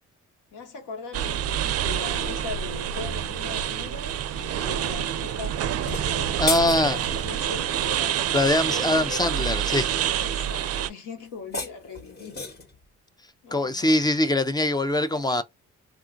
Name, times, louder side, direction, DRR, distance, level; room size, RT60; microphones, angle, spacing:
voice 1, 0.5-9.5 10.2-12.4 13.4-14.0 15.1-15.4, left 4 dB, 80° left, 1.0 m, -40 dB
sound 1, 1.1-10.9, right 10 dB, 55° right, 0.4 m, -27 dB
sound 2, 5.7-7.3 11.3-12.8, left 2 dB, 35° left, 0.9 m, -33 dB
voice 2, 6.4-7.0 8.3-10.0 13.5-15.4, left 1 dB, 15° left, 0.3 m, -23 dB
3.7 x 2.3 x 2.4 m
cardioid pair, 90°, 30 cm